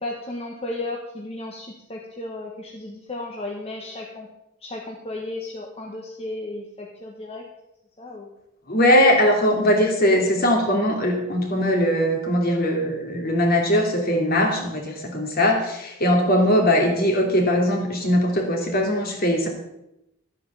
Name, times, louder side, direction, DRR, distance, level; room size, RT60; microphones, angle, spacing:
voice 1, 0.0-4.3 4.6-7.5 8.0-8.3, left 2 dB, 30° left, -1 dB, 1.5 m, -34 dB
voice 2, 8.7-19.5, equal, 50° left, 2 dB, 3.0 m, -20 dB
12.5 x 9.0 x 7.1 m, 0.87 s
head